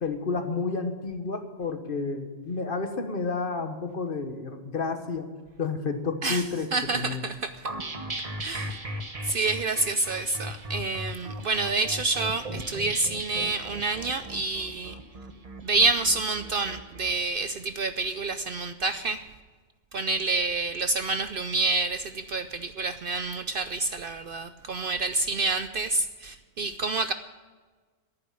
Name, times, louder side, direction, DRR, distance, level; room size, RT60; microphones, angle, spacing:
voice 1, 0.0-5.3 5.6-7.2, left 4 dB, 45° left, 7 dB, 1.4 m, -31 dB
voice 2, 6.7-7.7 8.4-8.8 9.2-14.9 15.6-19.2 19.9-27.1, right 3 dB, 55° right, 10 dB, 0.7 m, -28 dB
sound 1, 7.6-17.1, right 1 dB, 30° right, 1.2 m, -37 dB
11.0 x 9.5 x 9.8 m, 1.4 s
omnidirectional pair, 1.3 m